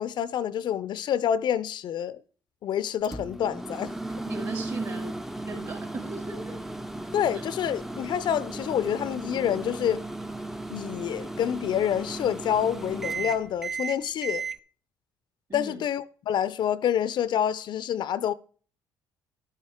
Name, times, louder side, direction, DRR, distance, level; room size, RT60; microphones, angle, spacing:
voice 1, 0.0-2.2 2.6-4.0 7.1-10.0 10.7-14.5 15.5-18.3, left 9 dB, 60° left, 0.4 m, -27 dB
Microwave oven, 3.0-14.6, right 3 dB, 5° right, 0.4 m, -35 dB
voice 2, 4.2-5.1 5.5-6.6 15.5-15.8, right 3 dB, 45° right, 3.7 m, -37 dB
11.0 x 9.0 x 3.5 m
supercardioid pair, 65°, 9 cm